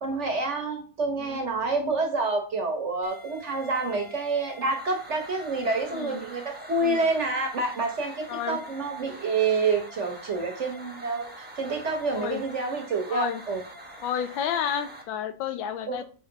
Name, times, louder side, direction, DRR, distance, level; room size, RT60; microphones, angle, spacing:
voice 1, 0.0-13.6 15.9-16.0, right 3 dB, 45° right, 4 dB, 1.1 m, -28 dB
sound 1, 3.0-15.0, equal, 10° right, 0.7 m, -45 dB
voice 2, 13.1-13.4 14.0-16.0, left 9 dB, 85° left, 11 dB, 1.4 m, -31 dB
6.5 x 4.2 x 3.9 m, 0.40 s
omnidirectional pair, 2.0 m